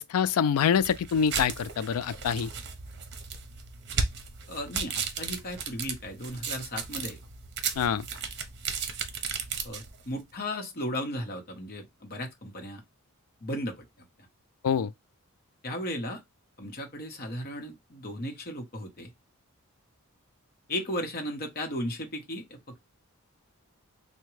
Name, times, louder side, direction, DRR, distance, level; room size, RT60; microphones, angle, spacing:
voice 1, 0.0-2.5 7.8-8.1 14.6-14.9, left 7 dB, 75° left, 0.3 m, -25 dB
sound 1, 0.8-10.1, right 5 dB, 50° right, 0.7 m, -35 dB
voice 2, 4.5-7.2 9.6-12.8 13.4-13.9 15.6-16.2 16.6-19.1 20.7-22.8, left 1 dB, 45° left, 1.0 m, -35 dB
3.5 x 2.2 x 3.1 m
head